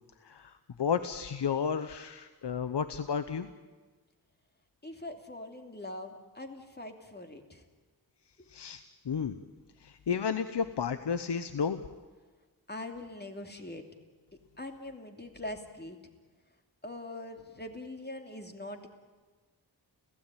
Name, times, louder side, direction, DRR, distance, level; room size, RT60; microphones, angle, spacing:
voice 1, 0.8-3.5 8.5-9.4 9.8-11.8, left 6 dB, 85° left, 11 dB, 0.9 m, -32 dB
voice 2, 4.8-7.6 12.7-13.8 14.6-16.0 16.8-18.9, left 1 dB, 25° left, 4 dB, 2.7 m, -42 dB
30.0 x 16.5 x 9.1 m, 1.3 s
wide cardioid pair, 95°, 40 cm